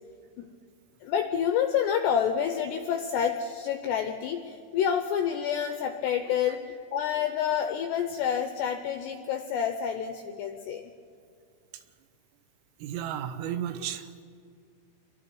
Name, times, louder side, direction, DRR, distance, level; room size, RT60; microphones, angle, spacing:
voice 1, 1.0-10.9, left 8 dB, 85° left, 7 dB, 2.4 m, -28 dB
voice 2, 12.8-14.1, right 10 dB, 85° right, 10 dB, 3.6 m, -33 dB
28.0 x 23.0 x 4.7 m, 2.3 s
omnidirectional pair, 5.9 m